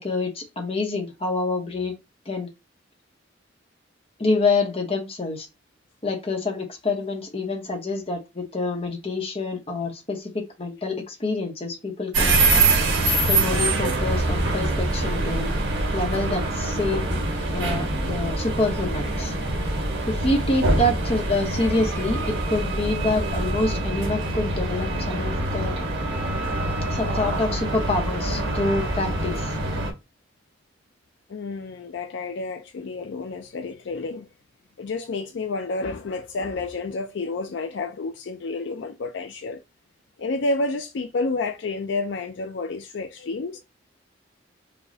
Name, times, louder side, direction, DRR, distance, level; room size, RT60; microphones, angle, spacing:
voice 1, 0.0-2.0 2.3-2.5 4.2-5.5 6.0-12.7 13.3-15.5 15.9-17.2 17.5-19.3 20.1-25.7 26.9-29.5, left 2 dB, 30° left, 0.9 m, -27 dB
sound 1, 12.1-29.9, right 2 dB, 75° right, 1.2 m, -24 dB
voice 2, 28.3-28.6 31.3-34.3 34.8-39.6 40.2-43.6, left 3 dB, 65° left, 0.4 m, -30 dB
5.0 x 2.2 x 2.7 m
head